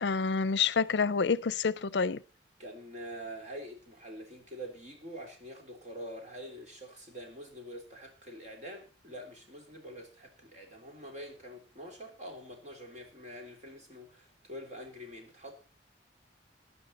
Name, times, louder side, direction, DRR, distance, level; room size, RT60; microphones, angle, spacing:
voice 1, 0.0-2.2, left 5 dB, 70° left, 0.5 m, -28 dB
voice 2, 2.6-15.5, equal, 40° right, 3.5 m, -45 dB
15.5 x 11.0 x 4.2 m
head